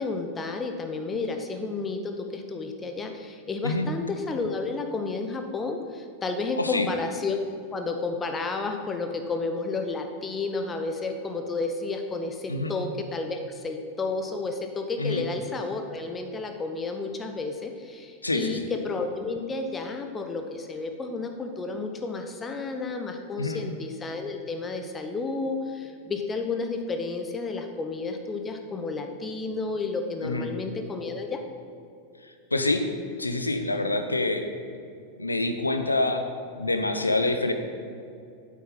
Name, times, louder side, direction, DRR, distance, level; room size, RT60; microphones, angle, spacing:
voice 1, 0.0-7.4 7.7-31.4, left 3 dB, 20° left, 5 dB, 0.8 m, -31 dB
voice 2, 6.6-6.9 12.5-12.7 15.0-15.2 18.2-18.7 23.4-23.6 30.2-30.5 32.5-32.8 33.2-34.4 35.2-36.2 36.6-37.5, left 2 dB, 80° left, 7 dB, 0.8 m, -26 dB
8.9 x 8.3 x 5.6 m, 2.5 s
figure-of-eight pair, 90°, 0 cm